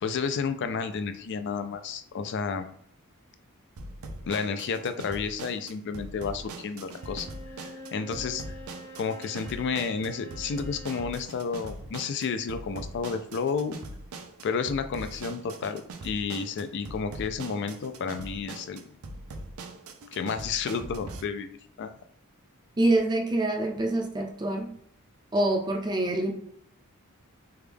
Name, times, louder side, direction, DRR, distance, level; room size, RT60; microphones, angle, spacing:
voice 1, 0.0-2.7 4.2-7.3 7.6-8.4 9.0-13.8 14.4-19.0 20.1-21.9, left 5 dB, 50° left, 9 dB, 0.3 m, -31 dB
sound 1, 3.8-21.2, right 2 dB, 75° right, 0.5 m, -42 dB
Bowed string instrument, 6.9-11.2, equal, 85° left, 1.3 m, -46 dB
voice 2, 22.8-24.7 25.3-26.3, right 1 dB, 20° right, 2 dB, 0.5 m, -25 dB
3.4 x 2.3 x 3.3 m, 0.69 s
head